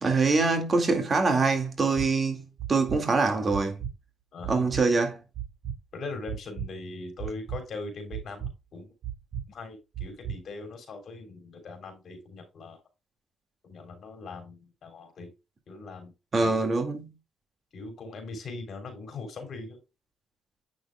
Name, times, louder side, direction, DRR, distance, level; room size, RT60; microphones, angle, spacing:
voice 1, 0.0-3.8 4.5-5.2 16.3-17.1, right 3 dB, 35° right, 2.0 m, -24 dB
sound 1, 2.0-2.1 2.6-3.0 3.5-3.9 4.4-4.8 5.3-5.8 6.3-6.7 7.2-7.6 8.1-8.5 9.0-9.4 9.9-10.4, right 10 dB, 60° right, 4.0 m, -34 dB
voice 2, 4.3-4.6 5.9-8.9 9.5-12.8 13.6-15.3 15.7-16.1 16.4-16.7 17.7-19.8, left 3 dB, 55° left, 3.3 m, -40 dB
8.4 x 6.2 x 2.3 m
cardioid pair, 90°, 0 cm